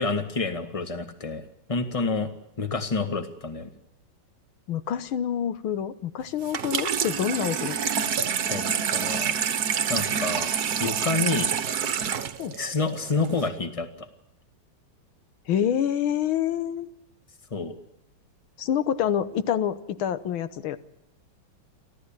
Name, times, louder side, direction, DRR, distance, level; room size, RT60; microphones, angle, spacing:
voice 1, 0.0-1.4 1.7-2.3 2.6-3.7 8.5-9.3 9.9-10.5 10.8-11.5 12.5-14.1 17.5-17.7, left 4 dB, 15° left, 8 dB, 1.8 m, -28 dB
voice 2, 4.7-7.8 12.4-12.5 15.5-16.9 18.6-20.8, left 9 dB, 90° left, 13 dB, 1.9 m, -27 dB
Water tap faucet / Sink (filling or washing), 6.4-13.5, right 7 dB, 55° right, 1.5 m, -27 dB
29.5 x 13.0 x 8.9 m, 0.85 s
omnidirectional pair, 2.2 m